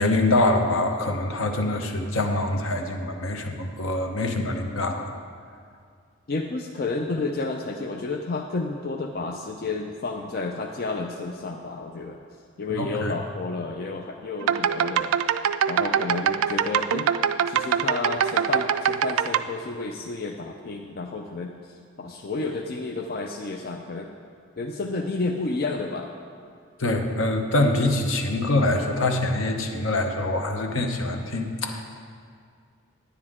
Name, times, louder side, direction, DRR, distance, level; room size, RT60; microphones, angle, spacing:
voice 1, 0.0-5.1 12.7-13.2 26.8-31.8, left 2 dB, 75° left, 4 dB, 0.9 m, -24 dB
voice 2, 6.3-12.2 12.6-15.2 15.7-17.1 17.5-24.1 24.6-26.1, left 3 dB, 45° left, 2 dB, 0.4 m, -31 dB
sound 1, 14.4-19.4, right 8 dB, 80° right, 0.3 m, -23 dB
9.8 x 9.7 x 3.7 m, 2.2 s
head